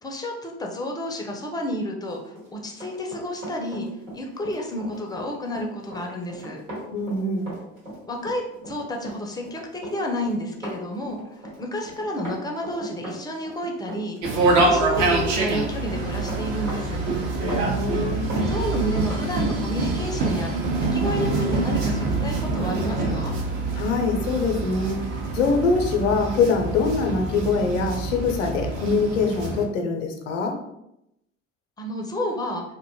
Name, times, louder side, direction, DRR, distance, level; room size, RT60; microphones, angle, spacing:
voice 1, 0.0-3.9 4.1-6.6 8.1-14.2 14.5-17.0 18.5-20.5 20.8-23.4 31.8-32.6, left 1 dB, 10° left, 1 dB, 0.4 m, -30 dB
Run, 2.2-19.3 19.6-19.8, equal, 85° right, 1.1 m, -38 dB
voice 2, 6.9-7.5 17.4-18.3 23.8-25.0 25.3-30.6, left 4 dB, 75° left, 4 dB, 0.5 m, -23 dB
sound 1, 14.2-29.6, right 2 dB, 50° right, 0.7 m, -26 dB
sound 2, 14.6-28.7, right 5 dB, 30° right, 0.9 m, -35 dB
2.5 x 2.2 x 2.8 m, 0.83 s
figure-of-eight pair, 60°, 37 cm